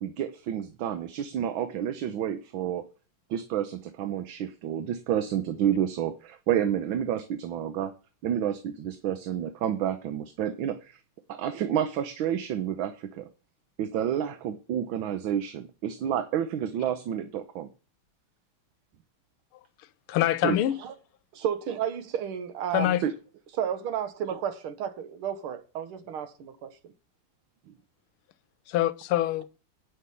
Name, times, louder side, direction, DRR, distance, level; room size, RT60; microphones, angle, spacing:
voice 1, 0.0-2.8 3.3-7.9 8.2-11.0 11.3-13.3 13.8-17.7 20.4-20.6 23.0-23.1, right 9 dB, 70° right, 1.5 m, -29 dB
voice 2, 20.1-20.8 22.7-23.0 28.7-29.5, left 13 dB, 90° left, 1.5 m, -25 dB
voice 3, 21.3-23.0 23.6-26.9, right 9 dB, 85° right, 1.9 m, -32 dB
9.6 x 5.7 x 6.9 m
omnidirectional pair, 2.3 m